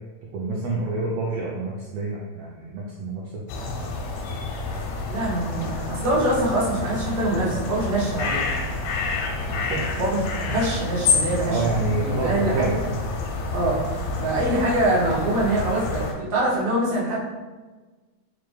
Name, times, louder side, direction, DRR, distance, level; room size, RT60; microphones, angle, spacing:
voice 1, 0.3-3.2 9.5-9.8 11.5-12.7, right 3 dB, 90° right, -3 dB, 1.4 m, -27 dB
sound 1, 3.5-16.1, left 3 dB, 80° left, 1.6 m, -28 dB
voice 2, 5.1-8.5 9.9-12.8 13.5-13.8 14.2-17.1, right 1 dB, 60° right, -8 dB, 0.8 m, -24 dB
4.9 x 2.3 x 3.1 m, 1.3 s
omnidirectional pair, 3.4 m